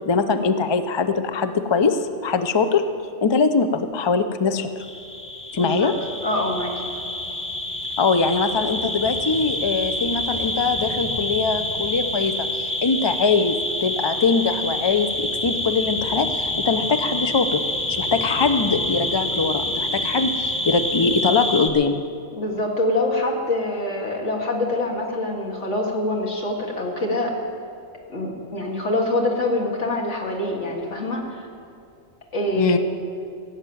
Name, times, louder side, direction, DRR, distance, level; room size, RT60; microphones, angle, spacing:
voice 1, 0.1-2.8 3.2-4.7 5.5-5.9 8.0-17.6 17.9-22.0 32.6-32.8, left 4 dB, 40° left, 9 dB, 0.3 m, -22 dB
sound 1, 4.8-21.7, left 1 dB, 10° left, 1.1 m, -27 dB
voice 2, 5.6-5.9 6.2-6.7 22.3-27.3 28.1-31.5 32.3-32.8, left 1 dB, 60° left, -1 dB, 2.3 m, -25 dB
16.0 x 7.3 x 9.1 m, 2.5 s
omnidirectional pair, 1.4 m